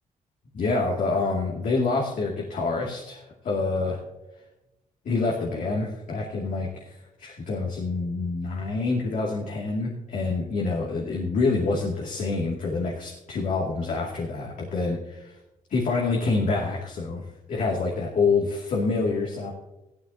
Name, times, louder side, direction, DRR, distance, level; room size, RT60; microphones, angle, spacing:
voice 1, 0.5-4.0 5.0-15.3 15.7-17.2 17.5-19.5, left 3 dB, 65° left, -3 dB, 2.4 m, -27 dB
15.0 x 13.0 x 2.8 m, 0.95 s
cardioid pair, 105°, 14 cm